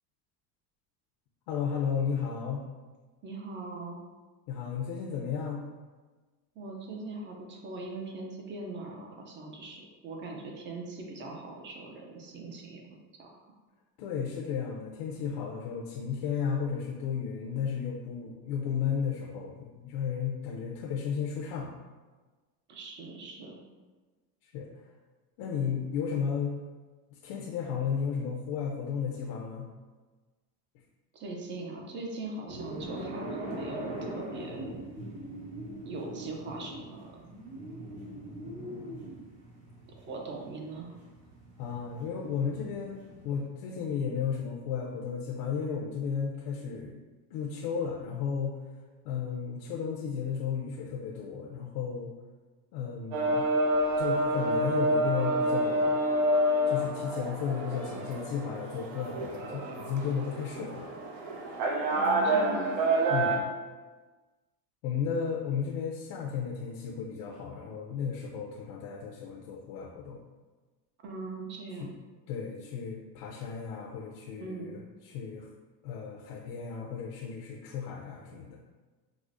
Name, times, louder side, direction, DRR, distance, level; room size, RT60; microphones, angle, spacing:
voice 1, 1.5-2.6 4.5-5.7 14.0-21.7 24.4-24.9 25.4-26.6 27.1-29.7 41.6-47.0 47.3-48.6 49.0-52.1 52.7-53.5 54.0-56.0 56.7-60.9 63.1-63.5 64.8-70.2 71.8-71.9 72.3-75.5 75.8-78.6, left 6 dB, 70° left, -1 dB, 0.6 m, -34 dB
voice 2, 3.2-4.0 6.6-12.8 13.2-13.4 22.7-23.6 31.1-34.8 35.9-37.1 40.1-40.9 61.9-62.8 71.0-71.9 74.4-74.8, right 3 dB, 25° right, 1 dB, 0.3 m, -41 dB
sound 1, 32.5-43.4, right 1 dB, 60° right, 1.1 m, -42 dB
sound 2, 53.1-63.4, right 1 dB, 85° right, 0.8 m, -28 dB
4.8 x 2.0 x 2.5 m, 1.3 s
supercardioid pair, 120°, 49 cm